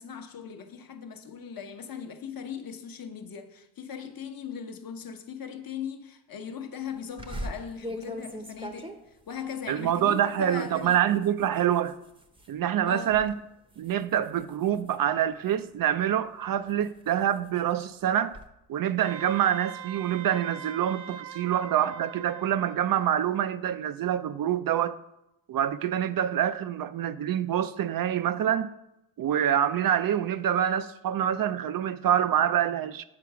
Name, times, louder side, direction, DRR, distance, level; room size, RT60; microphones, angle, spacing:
voice 1, 0.0-8.9 9.3-11.0 12.9-13.2, left 7 dB, 45° left, 1.0 m, -39 dB
sound 1, 7.2-12.5 12.9-13.3 13.7-15.7 16.3-18.5, equal, 10° right, 0.7 m, -42 dB
voice 2, 9.7-12.0 12.5-13.4 13.8-18.4 18.7-25.0 25.5-28.7 29.2-33.0, right 10 dB, 50° right, 0.4 m, -26 dB
Wind instrument woodwind instrument, 19.0-23.2, right 9 dB, 70° right, 0.8 m, -42 dB
7.7 x 4.5 x 5.9 m
cardioid pair, 90°, 48 cm